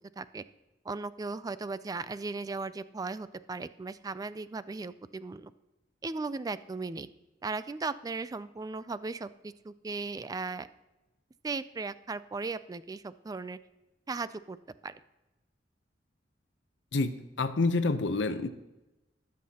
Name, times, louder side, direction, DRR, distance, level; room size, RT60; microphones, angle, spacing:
voice 1, 0.9-5.5 6.0-7.1 7.4-10.7 11.4-13.6 14.1-14.6 14.8-14.9, right 3 dB, 20° right, 15 dB, 0.3 m, -37 dB
voice 2, 16.9-18.5, left 3 dB, 70° left, 11 dB, 0.7 m, -28 dB
18.5 x 7.4 x 2.9 m, 1.0 s
head